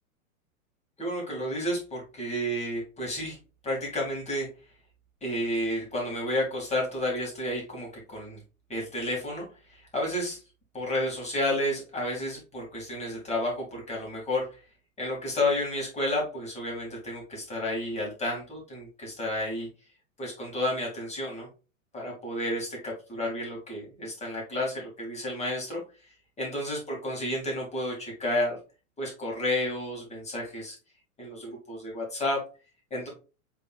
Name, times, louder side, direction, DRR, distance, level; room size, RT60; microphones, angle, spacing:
voice 1, 1.0-3.4 3.6-4.5 5.2-8.4 8.7-10.4 10.7-14.5 15.0-19.7 20.2-21.5 21.9-25.8 26.4-28.6 29.0-30.8 31.2-32.4 32.9-33.1, left 1 dB, 15° left, -2 dB, 2.4 m, -31 dB
5.5 x 3.8 x 2.5 m, 0.33 s
hypercardioid pair, 100°, 42 cm